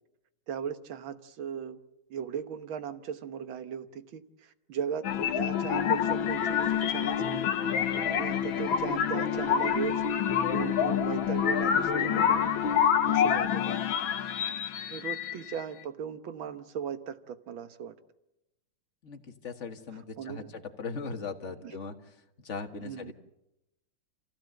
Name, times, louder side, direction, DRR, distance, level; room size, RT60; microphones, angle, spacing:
voice 1, 0.5-1.8 2.1-7.4 8.1-10.0 10.5-12.4 13.1-13.8 14.9-17.9 20.2-20.6 21.6-21.7 22.8-23.1, right 8 dB, 70° right, 10 dB, 1.9 m, -37 dB
sound 1, 5.0-15.6, left 8 dB, 70° left, 1.9 m, -27 dB
voice 2, 19.0-23.1, left 4 dB, 35° left, 5 dB, 1.6 m, -39 dB
27.5 x 16.0 x 7.7 m, 0.92 s
omnidirectional pair, 2.3 m